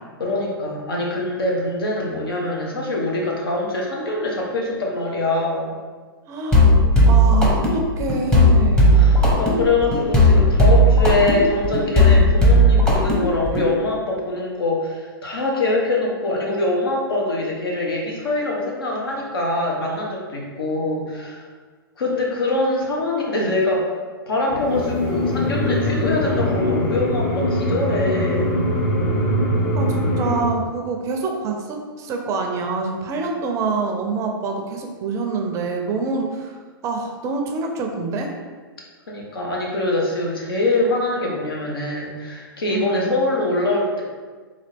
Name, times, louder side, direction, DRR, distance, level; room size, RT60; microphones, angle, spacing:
voice 1, 0.2-5.7 8.9-21.4 22.0-23.9 24.3-28.6 39.1-44.0, left 2 dB, 75° left, -2 dB, 1.1 m, -23 dB
voice 2, 6.3-6.7 7.0-9.0 29.5-38.3 42.7-43.2, right 4 dB, 25° right, 2 dB, 0.4 m, -26 dB
sound 1, 6.5-13.7, equal, 5° left, 0.8 m, -15 dB
sound 2, 24.5-30.4, left 1 dB, 40° left, 0.8 m, -22 dB
4.0 x 2.6 x 3.4 m, 1.5 s
hypercardioid pair, 125°, 12 cm